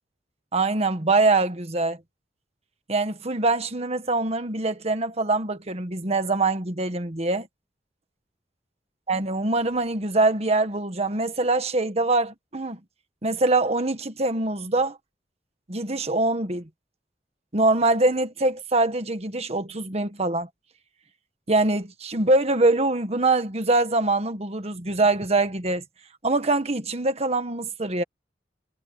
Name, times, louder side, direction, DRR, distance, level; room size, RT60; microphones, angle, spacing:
voice 1, 0.5-2.0 2.9-7.5 9.1-12.8 13.2-15.0 15.7-16.7 17.5-20.5 21.5-25.8 26.2-28.0, right 2 dB, 35° right, 1.5 m, -23 dB
head